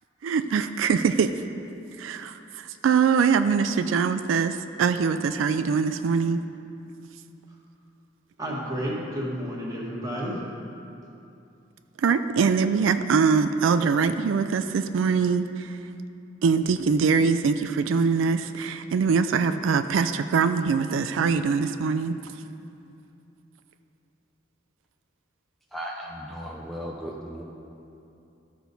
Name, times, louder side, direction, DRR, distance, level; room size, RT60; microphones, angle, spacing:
voice 1, 0.2-1.4 2.0-6.4 12.0-15.9 16.4-22.4, right 5 dB, 90° right, 10 dB, 0.4 m, -23 dB
voice 2, 8.4-10.4, equal, 20° right, -4 dB, 1.6 m, -31 dB
voice 3, 25.7-27.4, equal, ahead, -2 dB, 0.5 m, -36 dB
13.5 x 6.1 x 4.0 m, 2.7 s
head